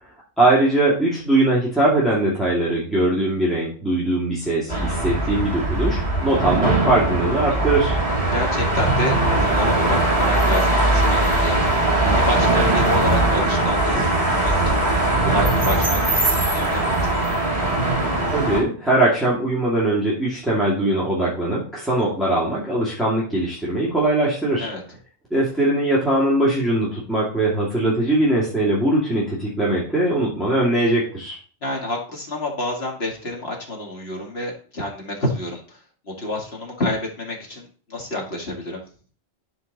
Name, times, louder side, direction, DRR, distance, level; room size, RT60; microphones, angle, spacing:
voice 1, 0.4-8.0 18.3-24.7 25.3-31.4, right 1 dB, ahead, -7 dB, 2.4 m, -21 dB
sound 1, 4.7-18.6, right 2 dB, 30° left, 3.2 m, -20 dB
voice 2, 8.3-11.5 12.0-14.9 15.2-17.1 24.6-24.8 31.6-35.8 36.1-38.8, left 1 dB, 65° left, 0 dB, 2.4 m, -28 dB
11.5 x 4.6 x 4.1 m, 0.42 s
omnidirectional pair, 1.1 m